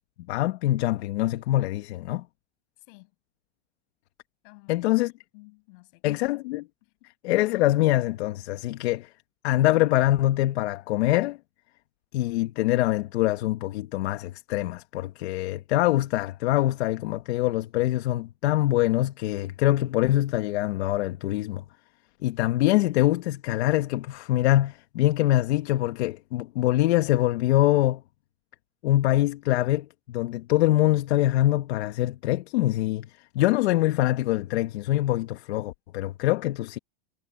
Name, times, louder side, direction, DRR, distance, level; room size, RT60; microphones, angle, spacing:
voice 1, 0.3-2.2 4.7-5.1 6.0-6.6 7.2-9.1 9.4-11.4 12.1-21.6 22.2-28.0 28.8-33.1 33.3-36.8, left 15 dB, 65° left, 1.5 m, -24 dB
voice 2, 2.8-3.1 4.4-5.1 5.3-6.2 6.8-7.1, left 29 dB, 45° left, 7.9 m, -53 dB
supercardioid pair, 175°, 35 cm